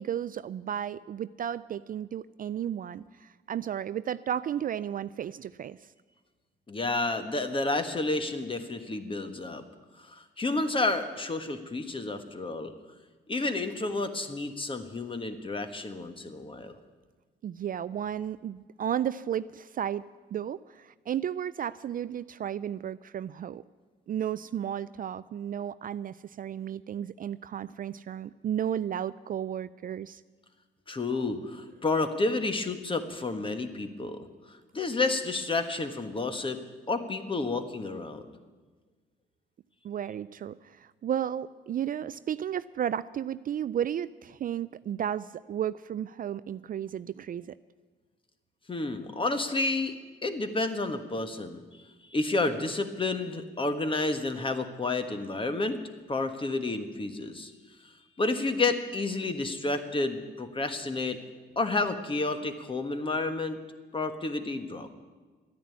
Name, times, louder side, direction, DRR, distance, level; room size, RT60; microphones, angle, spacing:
voice 1, 0.0-5.9 17.4-20.0 20.3-23.6 24.1-30.2 39.8-47.6, right 9 dB, 45° right, 16 dB, 0.4 m, -33 dB
voice 2, 6.7-9.6 10.0-12.7 13.3-16.7 30.9-34.3 34.7-36.6 36.9-38.3 48.7-49.9 50.2-51.6 52.1-55.8 56.1-57.5 57.8-57.9 58.2-61.2 61.5-63.6 63.9-64.9, left 3 dB, 25° left, 8 dB, 1.5 m, -30 dB
13.0 x 10.0 x 9.5 m, 1.3 s
cardioid pair, 90°, 20 cm